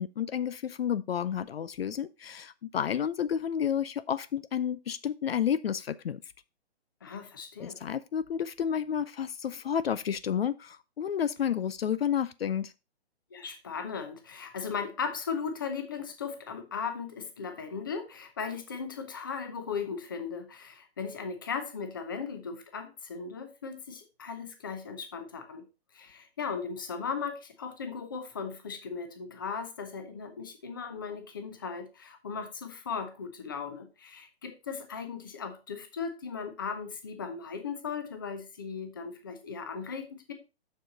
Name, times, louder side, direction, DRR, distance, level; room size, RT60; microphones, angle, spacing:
voice 1, 0.0-6.2 7.6-12.7, left 8 dB, 65° left, 0.5 m, -31 dB
voice 2, 7.0-7.8 13.3-25.6 25.9-40.3, left 5 dB, 20° left, 0.7 m, -37 dB
7.4 x 6.6 x 3.9 m
hypercardioid pair, 175°, 33 cm